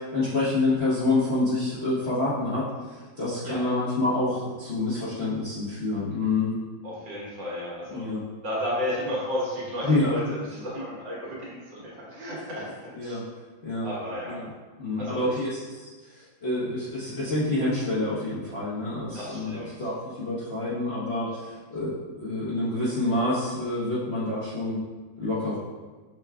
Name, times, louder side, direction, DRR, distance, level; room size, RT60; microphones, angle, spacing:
voice 1, 0.0-2.6 3.2-6.5 7.9-8.2 9.8-10.1 12.9-13.2 13.6-13.9 14.3-14.5 14.8-15.9 16.2-21.3 21.7-24.8 25.2-25.6, left 2 dB, 45° left, -10 dB, 0.9 m, -27 dB
voice 2, 6.8-8.0 8.4-12.7 13.0-13.2 13.8-14.4 15.0-15.4 19.1-19.7, equal, 70° right, -6 dB, 2.0 m, -33 dB
6.6 x 2.3 x 3.4 m, 1.3 s
omnidirectional pair, 2.1 m